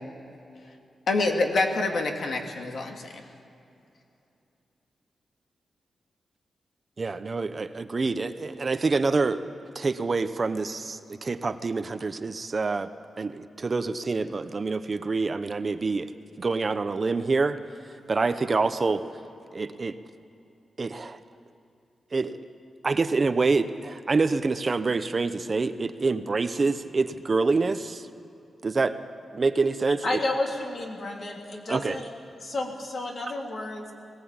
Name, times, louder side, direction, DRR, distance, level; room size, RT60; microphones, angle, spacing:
voice 1, 1.1-3.2, left 3 dB, 65° left, 3 dB, 2.1 m, -26 dB
voice 2, 7.0-9.4 9.7-12.9 13.2-16.1 16.4-17.6 18.1-19.0 19.5-20.0 20.8-21.2 22.1-22.5 22.8-28.1 28.6-29.0 29.3-30.2 31.7-32.0, right 3 dB, 35° right, 10 dB, 0.8 m, -26 dB
voice 3, 30.0-32.1 32.4-33.8, left 2 dB, 50° left, 0 dB, 3.4 m, -31 dB
20.0 x 19.5 x 8.8 m, 2.7 s
wide cardioid pair, 130°, 0 cm